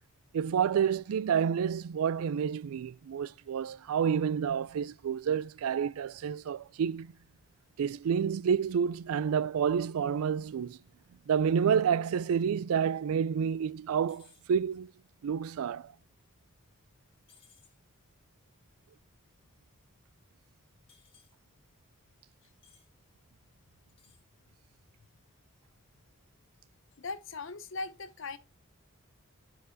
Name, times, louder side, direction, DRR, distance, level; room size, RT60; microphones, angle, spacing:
voice 1, 0.3-7.1 7.8-10.8 11.3-14.9 15.2-15.9, right 7 dB, 80° right, 0.3 m, -29 dB
sound 1, 14.1-14.5 17.3-17.8 20.9-21.3 22.6-22.9 23.9-24.3, left 6 dB, 25° left, 1.8 m, -61 dB
voice 2, 27.0-28.4, left 3 dB, 60° left, 0.8 m, -39 dB
11.0 x 4.7 x 2.6 m
head